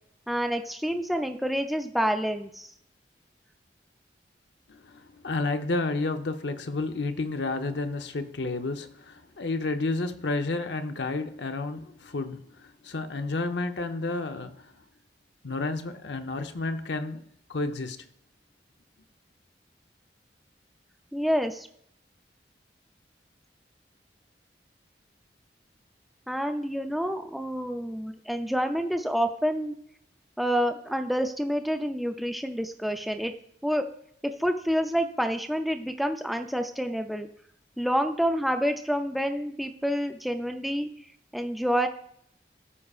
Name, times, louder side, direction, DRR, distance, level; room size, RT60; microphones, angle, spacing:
voice 1, 0.3-2.7 21.1-21.7 26.3-29.7 30.4-33.3 33.6-33.9 34.2-37.3 37.8-40.9 41.3-41.9, equal, ahead, 0.4 m, -28 dB
voice 2, 4.7-14.7 15.4-17.2 17.5-18.1, left 3 dB, 80° left, 0.7 m, -31 dB
14.0 x 4.8 x 2.4 m
head